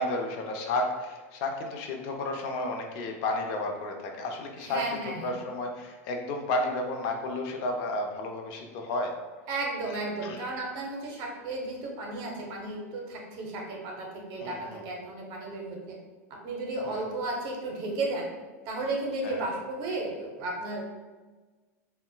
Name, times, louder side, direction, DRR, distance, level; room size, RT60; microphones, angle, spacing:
voice 1, 0.0-4.8 5.2-9.1 10.2-10.4 14.4-14.8 16.8-17.0 19.2-19.5, left 2 dB, 55° left, 2 dB, 0.5 m, -32 dB
voice 2, 4.6-5.4 9.5-16.0 16.3-18.3 18.6-20.8, right 2 dB, 50° right, 0 dB, 0.7 m, -34 dB
3.8 x 2.1 x 2.2 m, 1.3 s
hypercardioid pair, 110°, 8 cm